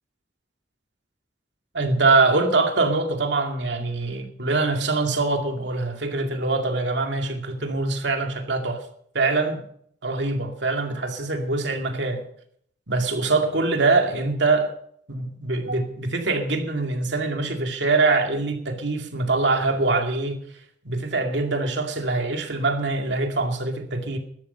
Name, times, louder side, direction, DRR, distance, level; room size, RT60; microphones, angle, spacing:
voice 1, 1.7-8.8 9.1-9.6 10.0-12.2 12.9-14.7 15.1-20.4 20.8-24.2, right 3 dB, 75° right, 2.3 m, -23 dB
14.0 x 12.0 x 5.6 m
head